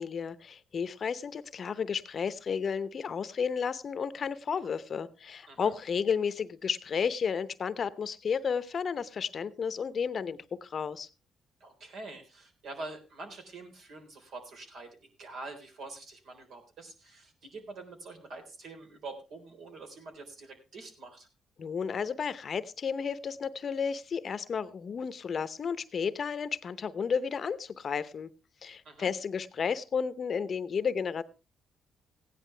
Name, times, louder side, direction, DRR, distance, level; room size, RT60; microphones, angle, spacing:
voice 1, 0.0-11.1 21.6-28.3 28.6-31.2, left 6 dB, 50° left, 14 dB, 0.8 m, -32 dB
voice 2, 11.6-14.9 15.2-21.3 28.8-29.1, right 3 dB, 70° right, 4 dB, 3.8 m, -45 dB
16.0 x 10.5 x 3.3 m, 0.31 s
cardioid pair, 90°, 0 cm